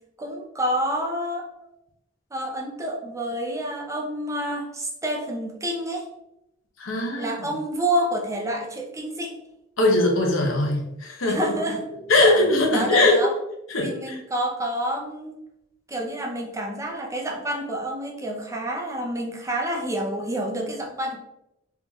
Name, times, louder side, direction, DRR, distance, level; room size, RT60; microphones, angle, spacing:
voice 1, 0.2-1.5 2.3-6.1 7.2-9.4 11.2-11.8 12.2-12.3 12.7-13.3 13.8-15.3 15.9-21.2, right 1 dB, 15° right, 0 dB, 0.6 m, -28 dB
voice 2, 6.8-7.5 9.8-11.5 12.1-13.2 13.7-14.2, left 2 dB, 80° left, 1 dB, 1.0 m, -21 dB
3.6 x 3.5 x 3.0 m, 0.86 s
head